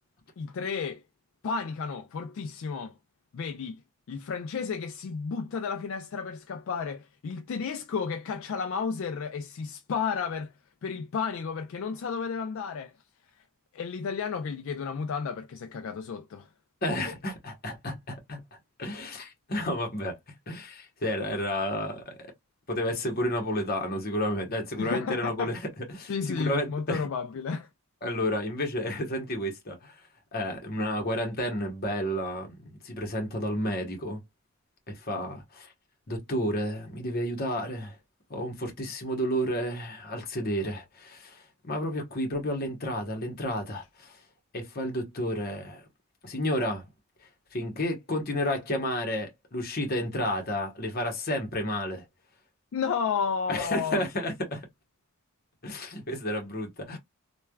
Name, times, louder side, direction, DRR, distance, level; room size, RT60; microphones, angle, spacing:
voice 1, 0.4-1.0 1.4-2.9 3.3-3.8 4.1-10.5 10.8-12.9 13.7-16.5 24.8-25.5 26.1-27.7 52.7-54.1 56.9-57.0, left 5 dB, 60° left, 0.3 m, -32 dB
voice 2, 16.8-18.4 18.8-20.2 20.5-22.3 22.7-27.1 28.0-30.0 30.3-34.2 34.9-35.7 36.1-38.0 38.3-44.2 44.5-45.8 46.2-46.9 47.5-52.0 53.5-54.7 55.6-57.0, equal, 40° left, 0.9 m, -31 dB
3.2 x 2.2 x 2.2 m
head